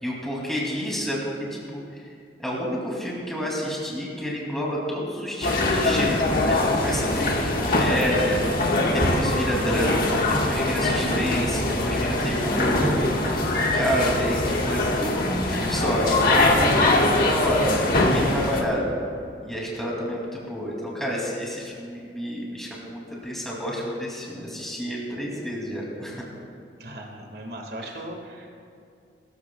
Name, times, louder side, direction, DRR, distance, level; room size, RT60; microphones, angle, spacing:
voice 1, 0.0-1.8 2.4-8.4 8.9-12.9 13.7-18.9 19.5-26.3, equal, ahead, -4 dB, 2.6 m, -29 dB
sound 1, 5.4-18.6, left 2 dB, 55° left, 1.6 m, -22 dB
voice 2, 26.8-28.5, right 1 dB, 60° right, 1 dB, 1.9 m, -38 dB
23.0 x 14.0 x 2.3 m, 2.5 s
head